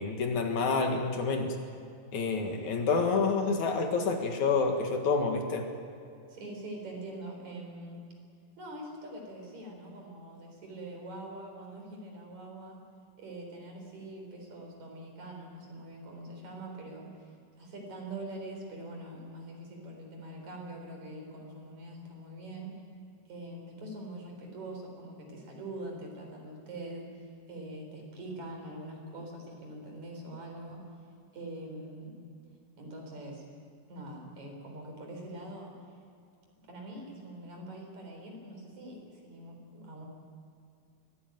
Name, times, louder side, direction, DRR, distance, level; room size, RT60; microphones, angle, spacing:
voice 1, 0.0-1.5 2.1-5.7, left 4 dB, 65° left, 4 dB, 3.0 m, -28 dB
voice 2, 6.3-8.0 8.6-12.8 13.2-17.3 17.6-22.8 23.3-30.8 31.3-32.2 32.8-33.5 33.9-35.7 36.7-40.1, right 1 dB, 55° right, 1 dB, 5.6 m, -43 dB
23.0 x 17.5 x 9.2 m, 2.4 s
omnidirectional pair, 3.8 m